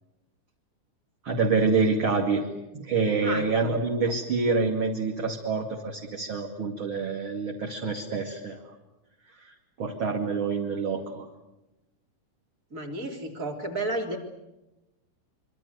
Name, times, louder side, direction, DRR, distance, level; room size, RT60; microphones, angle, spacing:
voice 1, 1.2-2.5 2.7-8.6 9.4-11.3, right 4 dB, 35° right, 1 dB, 2.7 m, -27 dB
voice 2, 3.2-3.8 12.7-14.2, right 2 dB, 20° right, 3 dB, 3.5 m, -32 dB
26.5 x 24.5 x 8.1 m, 0.97 s
omnidirectional pair, 4.5 m